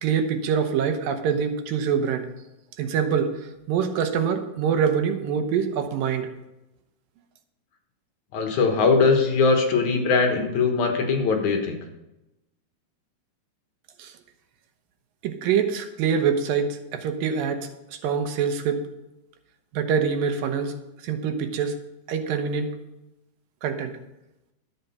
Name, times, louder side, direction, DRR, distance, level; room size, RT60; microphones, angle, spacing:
voice 1, 0.0-2.3 2.8-3.4 3.7-6.3 14.0-14.1 15.2-18.8 19.7-20.7 21.0-21.7 22.1-22.8 23.6-23.9, right 7 dB, 80° right, 7 dB, 2.7 m, -25 dB
voice 2, 8.3-11.8, left 4 dB, 65° left, 3 dB, 2.5 m, -21 dB
12.0 x 7.6 x 5.6 m, 0.92 s
omnidirectional pair, 4.0 m